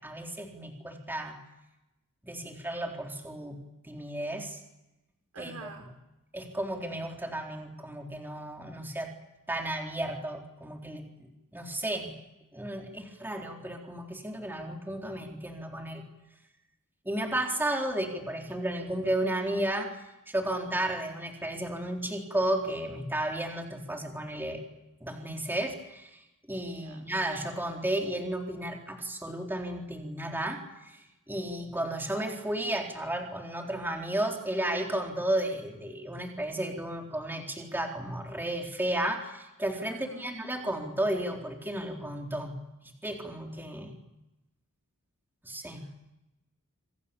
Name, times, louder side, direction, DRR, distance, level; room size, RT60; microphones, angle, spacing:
voice 1, 0.0-1.4 2.2-3.6 3.8-4.6 5.4-5.8 6.3-9.1 9.5-11.3 11.5-12.1 12.5-16.0 17.1-20.0 20.3-24.6 25.0-26.2 26.5-42.6 43.0-43.9 45.4-45.8, right 1 dB, 10° right, 1 dB, 4.1 m, -33 dB
voice 2, 5.3-5.8 26.6-27.0 39.9-40.3 45.7-46.0, right 3 dB, 90° right, 5 dB, 5.3 m, -48 dB
28.0 x 27.0 x 7.2 m, 0.95 s
head